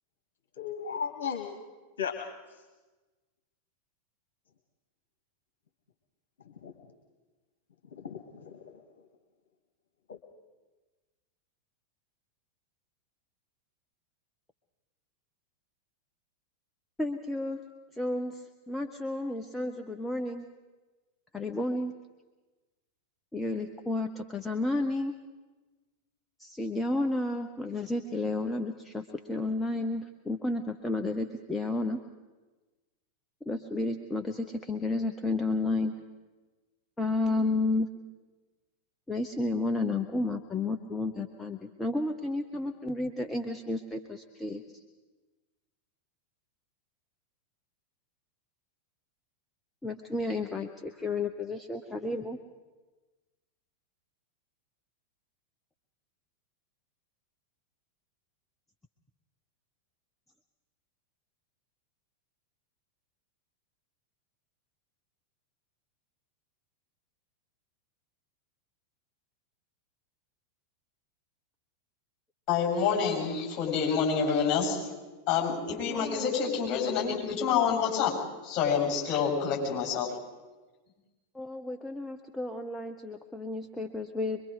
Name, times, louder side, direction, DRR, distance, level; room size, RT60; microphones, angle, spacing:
voice 1, 0.6-1.6 2.0-2.1 6.5-6.7 8.0-8.6 10.1-10.2, left 7 dB, 60° left, 4 dB, 1.7 m, -35 dB
voice 2, 17.0-17.6 17.9-20.5 21.3-21.9 23.3-25.1 26.4-32.0 33.5-35.9 37.0-37.9 39.1-44.6 49.8-52.4 75.9-76.3 81.3-84.4, left 2 dB, 10° left, 4 dB, 1.0 m, -32 dB
voice 3, 72.5-74.8 75.3-78.1 78.4-80.1, left 6 dB, 35° left, -1 dB, 7.3 m, -27 dB
24.0 x 22.5 x 5.0 m, 1.2 s
figure-of-eight pair, 90°, 0 cm